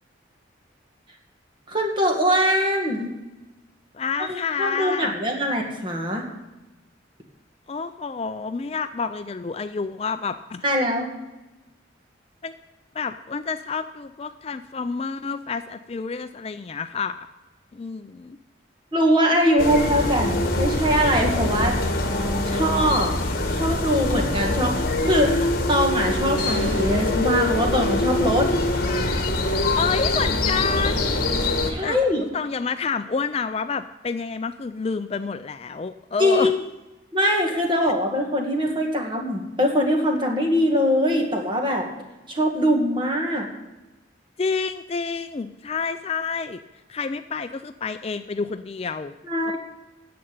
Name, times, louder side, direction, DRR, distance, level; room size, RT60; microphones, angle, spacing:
voice 1, 1.7-3.1 4.3-6.3 10.6-11.1 18.9-21.8 22.5-23.1 23.5-25.4 25.7-28.5 31.7-32.2 36.2-36.6 37.1-41.9 42.3-43.5 49.3-49.6, equal, 25° right, 1 dB, 2.0 m, -22 dB
voice 2, 3.9-5.1 7.7-10.6 12.4-12.5 12.9-17.3 17.7-18.4 29.8-31.2 31.8-36.5 44.4-46.6 46.9-49.1, left 5 dB, 30° left, 10 dB, 0.4 m, -29 dB
sound 1, 19.6-31.7, left 2 dB, 50° left, 1.4 m, -24 dB
sound 2, 26.4-28.7, right 1 dB, 75° right, 2.0 m, -39 dB
10.5 x 7.8 x 8.7 m, 1.0 s
head